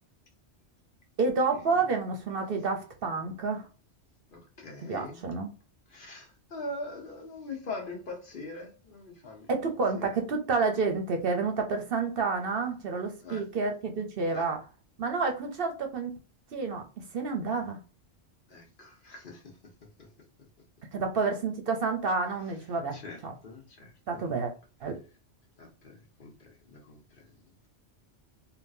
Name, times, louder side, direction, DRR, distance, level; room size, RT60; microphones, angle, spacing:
voice 1, 1.2-3.7 4.8-5.5 9.5-14.6 15.0-16.2 16.5-16.9 17.1-17.8 20.9-23.3 24.1-24.5 24.8-25.0, right 4 dB, 60° right, 0.8 m, -29 dB
voice 2, 4.3-5.3 5.9-9.5 9.9-10.1 13.2-13.4 14.3-14.5 18.5-19.5 20.0-20.1 22.9-24.3 25.6-27.3, left 2 dB, 50° left, 1.0 m, -42 dB
3.5 x 2.4 x 2.6 m
omnidirectional pair, 1.2 m